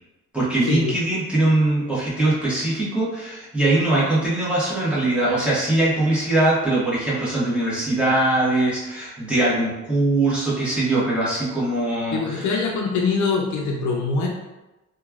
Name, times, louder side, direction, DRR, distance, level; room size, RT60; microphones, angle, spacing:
voice 1, 0.3-12.5, right 2 dB, 5° right, -9 dB, 1.2 m, -21 dB
voice 2, 12.1-14.3, left 4 dB, 70° left, 0 dB, 0.6 m, -23 dB
3.0 x 2.3 x 2.3 m, 1.0 s
cardioid pair, 90°, 30 cm